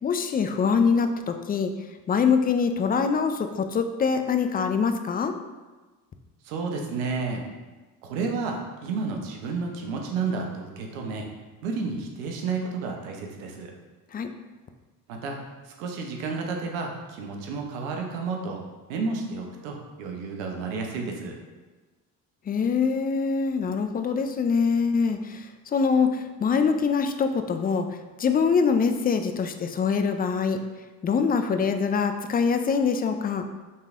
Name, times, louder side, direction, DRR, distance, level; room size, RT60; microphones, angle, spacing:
voice 1, 0.0-1.7 2.1-5.3 14.1-14.3 22.5-30.6 31.0-33.4, left 5 dB, 25° left, 7 dB, 0.4 m, -24 dB
voice 2, 6.4-7.4 8.0-11.3 11.6-13.7 15.1-18.6 18.9-21.3, right 4 dB, 90° right, 2 dB, 0.8 m, -31 dB
5.5 x 3.2 x 2.5 m, 1.2 s
supercardioid pair, 65°, 40 cm